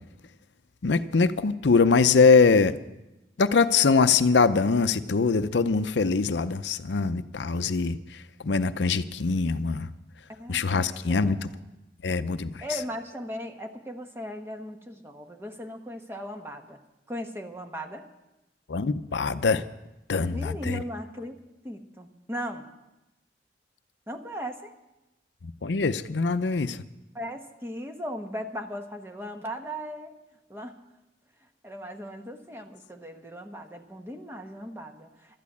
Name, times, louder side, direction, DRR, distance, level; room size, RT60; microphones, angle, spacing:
voice 1, 0.8-2.7 3.4-8.0 8.4-9.9 10.5-11.4 12.0-12.5 18.7-19.6 20.1-20.8 25.6-26.8, left 4 dB, 80° left, 12 dB, 0.6 m, -22 dB
voice 2, 10.3-11.6 12.6-16.8 17.1-18.1 20.3-21.4 21.6-22.7 24.1-24.7 27.1-30.1 30.5-30.8 31.6-35.4, equal, 15° right, 4 dB, 1.1 m, -38 dB
12.5 x 10.5 x 8.3 m, 0.98 s
head